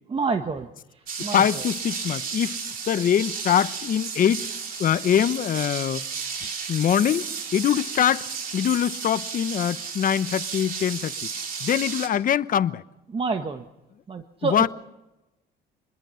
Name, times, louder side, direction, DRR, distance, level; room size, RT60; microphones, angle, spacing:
voice 1, 0.1-0.7 1.2-1.6 13.1-13.6 14.1-14.7, right 4 dB, 30° right, 1.4 m, -27 dB
sound 1, 1.1-12.1, right 5 dB, 50° right, 4.0 m, -33 dB
voice 2, 1.3-2.6 2.9-4.5 4.8-6.0 6.7-8.3 8.5-11.1 11.6-12.8 14.4-14.7, left 9 dB, 50° left, 0.9 m, -23 dB
27.0 x 21.5 x 5.8 m
cardioid pair, 115°, 19 cm